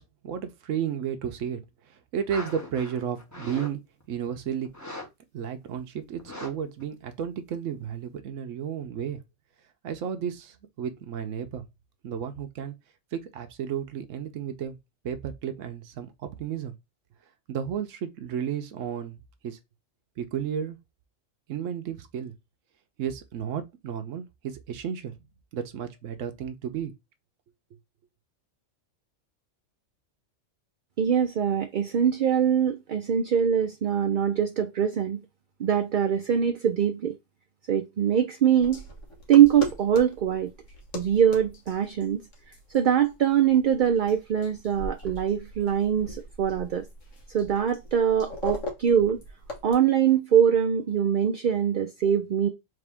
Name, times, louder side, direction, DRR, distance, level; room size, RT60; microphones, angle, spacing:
voice 1, 0.0-1.6 1.9-3.8 4.1-4.7 5.3-9.2 9.8-11.6 12.0-12.7 13.1-14.8 15.0-16.7 17.5-19.1 19.4-19.6 20.2-20.8 21.5-22.3 23.0-25.1 25.5-26.9, right 8 dB, 80° right, 1.1 m, -33 dB
sound 1, 2.3-3.7 4.0-4.3 4.6-5.1 5.4-5.5 6.2-6.5 6.8-6.9, left 1 dB, 15° left, 1.0 m, -40 dB
voice 2, 31.0-35.2 35.6-37.1 37.7-38.8 39.3-40.5 40.9-42.2 42.7-46.9 47.3-49.2 49.6-52.5, right 9 dB, 55° right, 0.5 m, -23 dB
sound 2, 38.6-49.7, left 1 dB, 80° left, 1.7 m, -40 dB
3.8 x 3.3 x 3.4 m
omnidirectional pair, 1.3 m